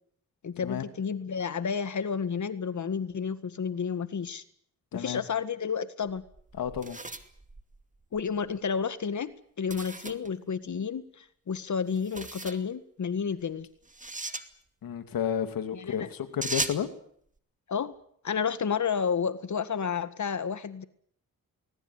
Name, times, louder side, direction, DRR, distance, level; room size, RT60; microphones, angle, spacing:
voice 1, 0.4-4.4 4.9-6.2 8.1-9.3 9.6-13.7 15.7-16.1 17.7-17.9 18.2-20.8, left 6 dB, 55° left, 12 dB, 1.8 m, -31 dB
sound 1, 6.0-8.3 9.7-10.3 11.9-12.6 13.9-14.5 16.4-16.9, right 2 dB, 20° right, 2.5 m, -37 dB
voice 2, 6.5-7.0 14.8-16.9, left 9 dB, 80° left, 8 dB, 2.7 m, -31 dB
20.5 x 19.0 x 9.6 m, 0.64 s
cardioid pair, 55°, 34 cm